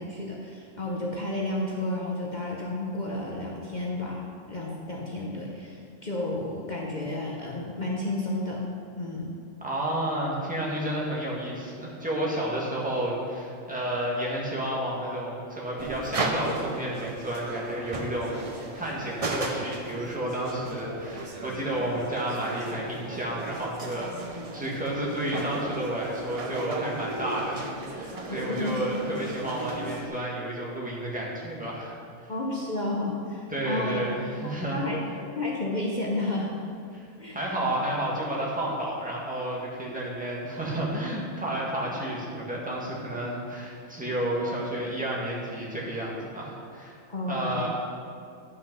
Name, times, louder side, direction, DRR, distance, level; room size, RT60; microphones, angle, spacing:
voice 1, 0.0-8.6 9.0-9.3 28.3-28.8 32.3-36.5 37.2-37.4 47.1-47.7, left 2 dB, 40° left, -3 dB, 0.9 m, -32 dB
voice 2, 9.6-18.4 18.7-31.9 32.2-32.3 33.5-34.8 36.9-37.0 37.3-47.0 47.3-47.7, right 1 dB, 5° right, -5 dB, 1.7 m, -31 dB
sound 1, 15.8-30.1, right 2 dB, 35° right, 0.7 m, -36 dB
10.5 x 5.5 x 5.5 m, 2.4 s
omnidirectional pair, 1.4 m